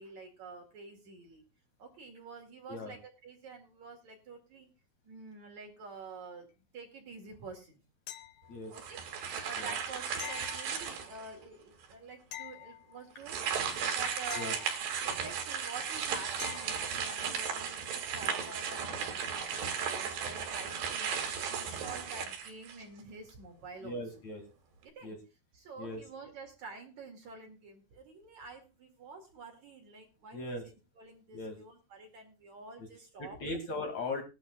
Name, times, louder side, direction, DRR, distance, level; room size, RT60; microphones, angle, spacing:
voice 1, 0.0-1.4 1.8-4.7 5.0-7.8 8.7-9.0 9.3-13.5 13.9-14.6 15.0-21.1 21.5-24.0 24.8-25.2 25.5-33.6, right 4 dB, 50° right, 3 dB, 3.2 m, -48 dB
sound 1, 8.1-8.8 10.2-11.3 12.3-13.3 14.3-15.3 16.4-17.0 19.8-19.9, left 13 dB, 75° left, 2.7 m, -47 dB
sound 2, 8.7-11.3 11.8-11.9 13.2-23.0, right 7 dB, 85° right, 4.3 m, -35 dB
voice 2, 23.8-24.4 25.0-25.2 25.8-26.0 30.3-30.6 31.3-31.6 32.8-32.9 33.2-34.2, left 2 dB, 50° left, 4 dB, 3.2 m, -38 dB
20.5 x 12.5 x 2.3 m, 0.29 s
omnidirectional pair, 4.7 m